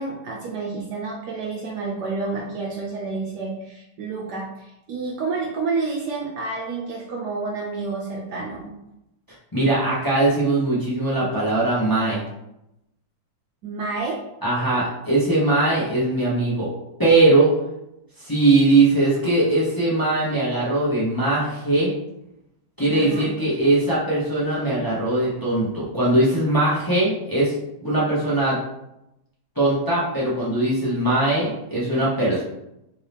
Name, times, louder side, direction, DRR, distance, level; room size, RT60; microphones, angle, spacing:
voice 1, 0.0-8.7 13.6-14.2 22.9-23.3, right 3 dB, 70° right, -2 dB, 1.1 m, -29 dB
voice 2, 9.5-12.2 14.4-16.7 17.0-17.5 18.2-21.9 22.8-27.5 27.8-28.6 29.6-32.4, right 2 dB, 25° left, -8 dB, 0.5 m, -20 dB
3.6 x 2.8 x 3.4 m, 0.87 s
omnidirectional pair, 2.1 m